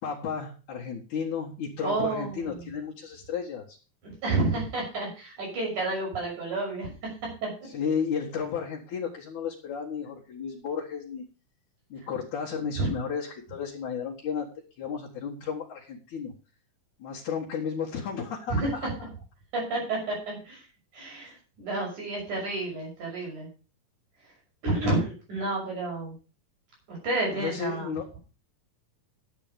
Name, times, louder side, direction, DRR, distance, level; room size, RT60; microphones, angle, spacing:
voice 1, 0.0-3.8 7.7-11.2 11.9-14.5 14.8-16.3 17.0-18.9 21.2-21.4 27.3-28.1, left 6 dB, 80° left, -5 dB, 3.2 m, -33 dB
voice 2, 1.8-2.7 4.0-7.1 7.4-7.5 12.8-12.9 18.5-18.7 19.5-20.6 20.9-23.5 24.6-26.2 26.9-27.9, right 2 dB, 85° right, -3 dB, 7.7 m, -30 dB
11.0 x 8.8 x 5.2 m, 0.35 s
omnidirectional pair, 3.4 m